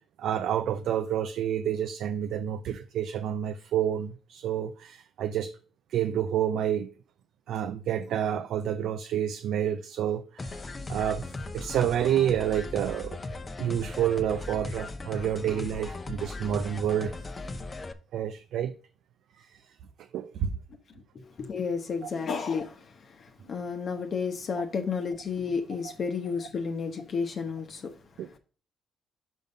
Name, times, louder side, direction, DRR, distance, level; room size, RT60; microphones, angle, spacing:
voice 1, 0.2-5.5 5.9-6.9 7.5-11.2 11.5-13.2 13.6-17.2 18.1-18.7 19.4-19.6 20.1-20.6 22.0-22.1 28.2-28.3, right 10 dB, 75° right, 0.5 m, -29 dB
sound 1, 10.4-17.9, left 2 dB, 30° left, 0.8 m, -38 dB
voice 2, 21.1-22.8 23.5-27.9, left 5 dB, 50° left, 1.0 m, -31 dB
5.4 x 5.4 x 5.3 m
cardioid pair, 90°, 0 cm